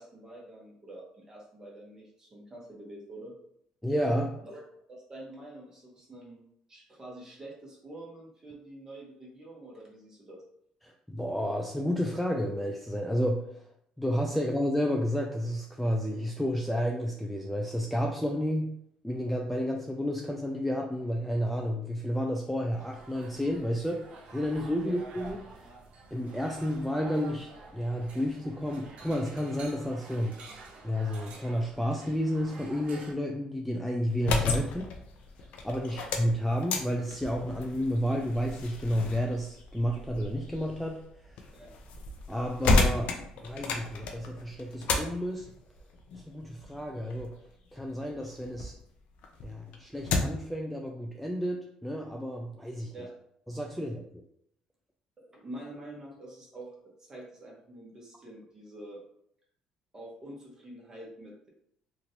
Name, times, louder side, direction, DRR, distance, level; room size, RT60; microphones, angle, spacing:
voice 1, 0.0-3.3 4.4-4.6 4.9-6.4 6.7-10.4 24.8-25.0 35.8-36.0 41.5-41.7 52.9-53.1 55.2-59.0 59.9-61.5, right 1 dB, 25° right, -3 dB, 1.1 m, -46 dB
voice 2, 3.8-4.4 10.8-25.7 26.1-30.5 30.8-34.9 35.4-41.5 42.3-43.1 43.4-45.5 46.1-47.4 47.7-48.7 49.4-53.1 53.5-54.2, equal, ahead, 0 dB, 0.3 m, -31 dB
sound 1, 22.7-33.1, right 3 dB, 60° right, 0.6 m, -49 dB
sound 2, 34.1-48.8 49.2-50.5, left 3 dB, 70° left, 0.5 m, -33 dB
3.0 x 2.5 x 2.8 m, 0.72 s
cardioid pair, 100°, 2 cm